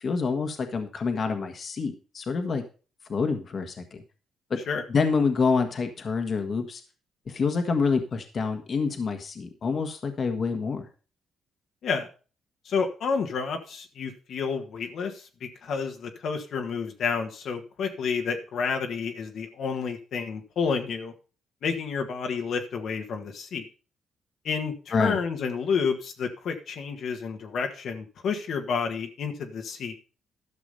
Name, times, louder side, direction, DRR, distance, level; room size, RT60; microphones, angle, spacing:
voice 1, 0.0-2.6 3.1-4.0 4.5-4.6 4.9-6.8 7.3-10.9 24.9-25.2, left 4 dB, 45° left, 6 dB, 1.5 m, -27 dB
voice 2, 12.6-21.1 21.6-23.6 24.4-30.0, left 5 dB, 65° left, 4 dB, 1.6 m, -30 dB
12.5 x 6.2 x 5.4 m, 0.37 s
cardioid pair, 90°, 0 cm